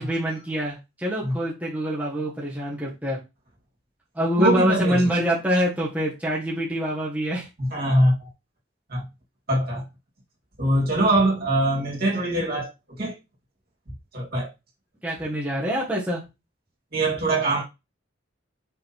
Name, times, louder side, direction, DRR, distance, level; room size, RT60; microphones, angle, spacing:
voice 1, 0.0-3.2 4.1-7.5 15.0-16.2, equal, 10° right, 1.5 m, -25 dB
voice 2, 4.4-5.1 7.6-8.3 8.9-9.0 9.5-9.8 10.6-12.7 13.0-13.1 14.1-14.5 16.9-17.6, right 1 dB, 50° right, 2.9 m, -22 dB
5.7 x 3.9 x 4.4 m
head